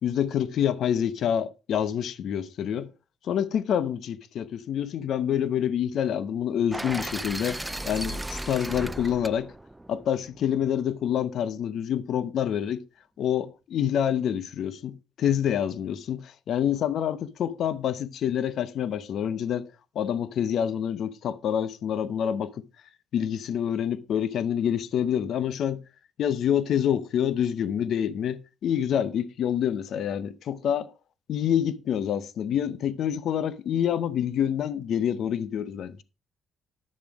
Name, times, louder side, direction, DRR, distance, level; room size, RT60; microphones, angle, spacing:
voice 1, 0.0-2.9 3.2-7.6 7.8-9.5 9.9-12.8 13.2-19.7 19.9-22.6 23.1-25.8 26.2-30.9 31.3-36.0, left 9 dB, 65° left, 0.9 m, -27 dB
sound 1, 6.7-10.8, right 1 dB, 10° right, 0.5 m, -36 dB
11.0 x 7.0 x 5.0 m
hypercardioid pair, 55°, 0 cm